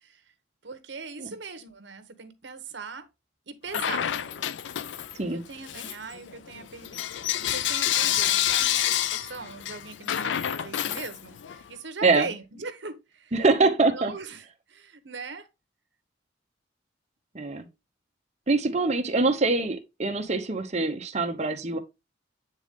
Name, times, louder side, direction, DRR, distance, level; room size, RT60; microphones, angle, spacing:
voice 1, 0.6-3.1 3.5-4.1 5.3-15.5, right 4 dB, 65° right, 1.1 m, -40 dB
Bell / Coin (dropping), 3.7-5.2 5.6-11.6, left 11 dB, 70° left, 0.4 m, -28 dB
voice 2, 13.3-14.1 17.3-17.7 18.5-21.8, right 3 dB, 35° right, 1.0 m, -24 dB
8.8 x 3.8 x 3.6 m
head